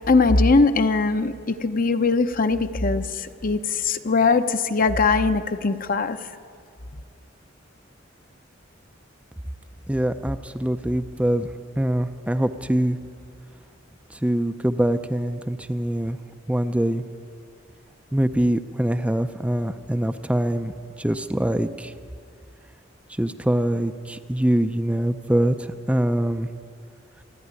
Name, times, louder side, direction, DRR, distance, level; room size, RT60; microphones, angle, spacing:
voice 1, 0.1-3.0 3.4-6.2, left 3 dB, 45° left, 9 dB, 0.8 m, -20 dB
voice 2, 9.9-11.5 11.8-13.0 14.2-16.2 16.5-17.0 18.1-20.7 21.0-21.9 23.2-26.5, right 1 dB, 5° right, 9 dB, 0.5 m, -23 dB
26.0 x 11.0 x 9.7 m, 2.3 s
head